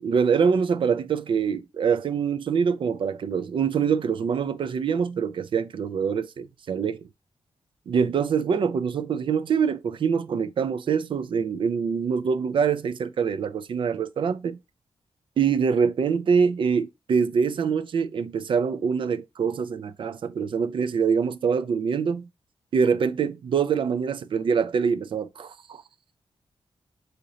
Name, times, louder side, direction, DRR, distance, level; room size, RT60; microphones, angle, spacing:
voice 1, 0.0-7.1 7.9-14.6 15.4-22.3 22.7-25.8, right 6 dB, 55° right, 0.4 m, -24 dB
3.8 x 2.8 x 3.0 m
wide cardioid pair, 115°, 10 cm